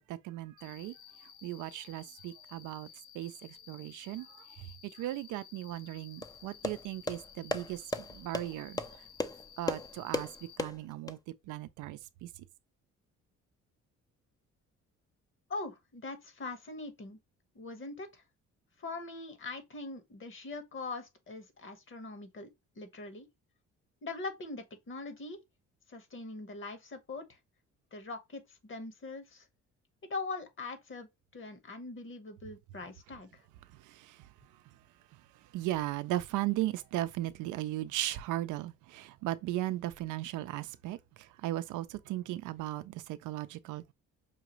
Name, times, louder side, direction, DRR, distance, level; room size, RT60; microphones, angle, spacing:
voice 1, 0.1-0.9 1.4-2.9 3.1-4.7 5.0-8.8 9.6-10.3 10.6-11.2 11.5-12.3 33.9-34.2 35.5-43.9, right 15 dB, 90° right, 0.5 m, -37 dB
Cricket, 0.6-10.6, left 9 dB, 90° left, 0.7 m, -55 dB
sound 1, 6.2-11.2, left 3 dB, 15° left, 0.4 m, -37 dB
voice 2, 15.5-17.2 17.5-18.2 18.8-22.5 22.8-23.3 24.0-25.4 25.9-27.4 27.9-29.4 30.1-31.1 31.3-33.3, left 3 dB, 40° left, 1.2 m, -42 dB
5.7 x 2.5 x 3.0 m
cardioid pair, 90°, 30 cm